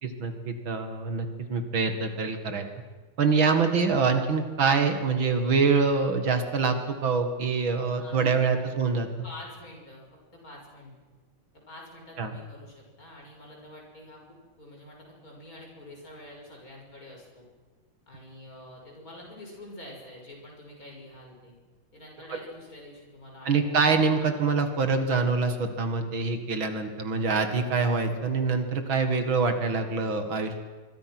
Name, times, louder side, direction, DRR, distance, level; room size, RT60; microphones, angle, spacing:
voice 1, 0.0-2.6 3.2-9.1 12.2-12.3 22.3-22.4 23.5-30.6, right 4 dB, 70° right, 6 dB, 2.8 m, -25 dB
voice 2, 8.0-8.3 8.7-8.8 9.2-10.0 10.3-10.9 11.5-17.4 18.1-21.5 21.9-23.9, left 1 dB, 40° left, -1 dB, 6.7 m, -47 dB
26.0 x 24.5 x 6.1 m, 1.3 s
omnidirectional pair, 2.3 m